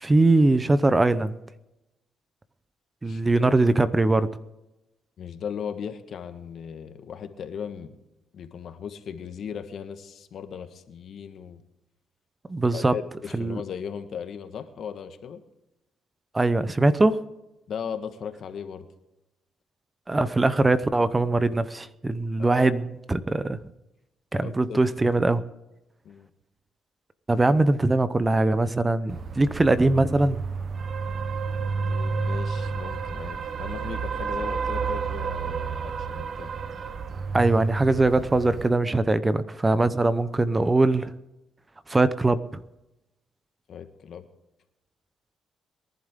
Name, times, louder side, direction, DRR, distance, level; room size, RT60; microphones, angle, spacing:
voice 1, 0.0-1.4 3.0-4.3 12.5-12.9 13.3-13.6 16.3-17.2 20.1-23.6 24.3-25.4 27.3-30.4 37.3-41.1 41.9-42.6, right 2 dB, 20° right, 14 dB, 0.7 m, -22 dB
voice 2, 3.0-3.5 5.2-8.0 8.3-11.6 12.7-15.4 17.7-18.9 22.4-22.7 24.4-24.9 26.0-26.3 31.7-36.5 43.7-44.2, left 7 dB, 65° left, 8 dB, 1.4 m, -37 dB
sound 1, 29.1-38.7, right 5 dB, 50° right, 0.9 m, -30 dB
22.5 x 11.5 x 3.7 m, 0.95 s
cardioid pair, 90°, 0 cm